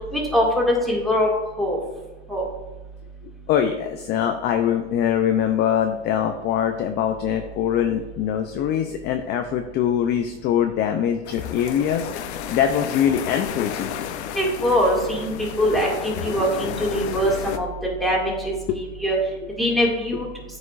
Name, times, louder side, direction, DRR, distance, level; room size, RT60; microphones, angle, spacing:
voice 1, 0.1-1.3 1.6-1.8 2.3-2.4 14.3-15.3 15.6-17.7 18.0-19.2 19.6-20.3, equal, ahead, -3 dB, 2.1 m, -22 dB
voice 2, 3.5-12.1 12.5-13.9 18.7-18.8, left 9 dB, 30° left, 6 dB, 0.5 m, -23 dB
sound 1, 11.2-17.6, left 9 dB, 80° left, 0.8 m, -32 dB
12.5 x 4.9 x 2.5 m, 1.2 s
supercardioid pair, 130°, 33 cm